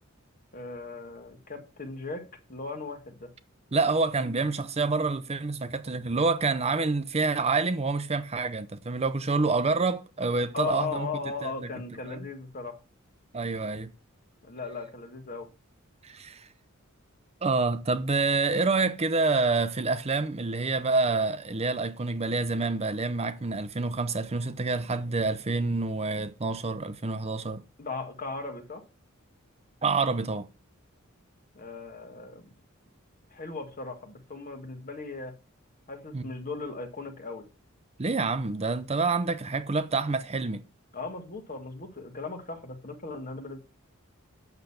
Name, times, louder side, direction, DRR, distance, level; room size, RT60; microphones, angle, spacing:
voice 1, 0.5-3.3 10.5-12.8 14.4-15.5 27.8-28.8 31.5-32.5 33.3-35.3 35.9-37.4 40.9-43.6, left 4 dB, 40° left, 1.8 m, -37 dB
voice 2, 3.7-11.1 11.4-11.7 12.1-12.2 13.3-13.9 16.0-16.5 17.4-27.6 29.8-30.5 36.1-36.2 38.0-40.6, right 3 dB, 30° right, 0.7 m, -27 dB
8.2 x 6.6 x 7.1 m
head